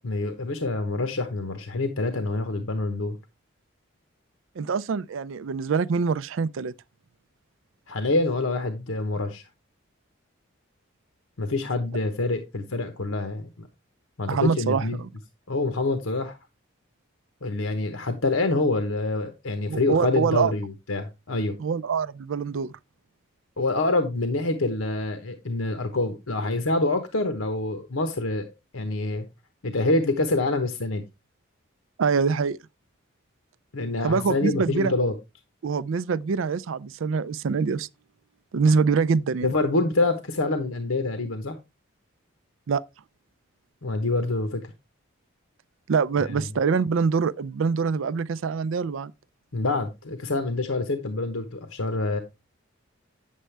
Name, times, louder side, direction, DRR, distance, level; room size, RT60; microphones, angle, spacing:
voice 1, 0.0-3.2 7.9-9.4 11.4-13.7 14.2-15.0 15.5-16.4 17.4-21.6 23.6-29.2 29.6-31.0 33.7-35.1 39.4-41.6 43.8-44.6 46.3-46.5 49.5-52.2, left 2 dB, 75° left, 1.0 m, -26 dB
voice 2, 4.6-6.7 14.3-15.1 19.7-20.5 21.6-22.7 32.0-32.6 34.0-34.9 35.6-37.9 38.5-39.5 42.7-42.8 45.9-49.1, right 5 dB, 70° right, 0.4 m, -24 dB
9.1 x 7.4 x 3.3 m
head